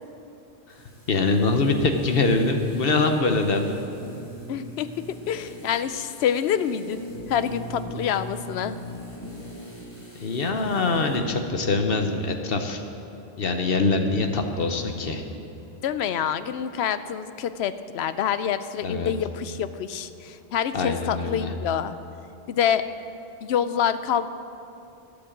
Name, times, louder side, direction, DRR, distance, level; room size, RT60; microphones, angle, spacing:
sound 1, 0.7-11.4 11.6-11.7, equal, 30° left, 2.2 m, -41 dB
voice 1, 1.1-3.8 10.2-12.8 13.4-15.2 18.8-19.1 20.7-21.5, left 3 dB, 60° left, 5 dB, 1.2 m, -24 dB
voice 2, 4.5-4.9 5.3-8.7 15.8-21.9 22.5-22.8 23.4-24.3, left 8 dB, 80° left, 13 dB, 0.8 m, -26 dB
12.5 x 8.4 x 7.3 m, 2.8 s
omnidirectional pair, 1.1 m